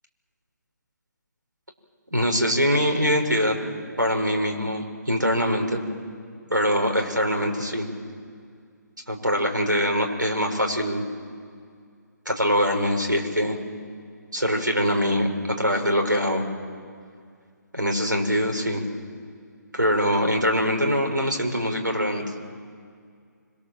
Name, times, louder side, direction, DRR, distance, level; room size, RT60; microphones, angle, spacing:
voice 1, 2.1-3.6 4.0-5.8 6.5-7.9 9.1-11.0 12.2-13.6 14.3-16.4 17.7-18.8 19.7-22.2, equal, 85° right, 3 dB, 5.0 m, -23 dB
25.5 x 25.5 x 7.5 m, 2.1 s
figure-of-eight pair, 140°, 10 cm